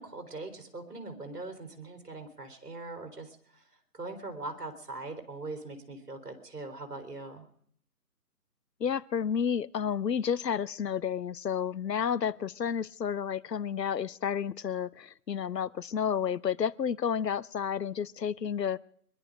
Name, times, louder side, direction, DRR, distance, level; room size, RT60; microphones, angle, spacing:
voice 1, 0.0-3.7 3.9-7.5, right 2 dB, 65° right, 6 dB, 3.7 m, -41 dB
voice 2, 8.8-18.8, left 7 dB, 80° left, 20 dB, 0.7 m, -31 dB
22.5 x 11.5 x 5.1 m, 0.64 s
figure-of-eight pair, 160°, 49 cm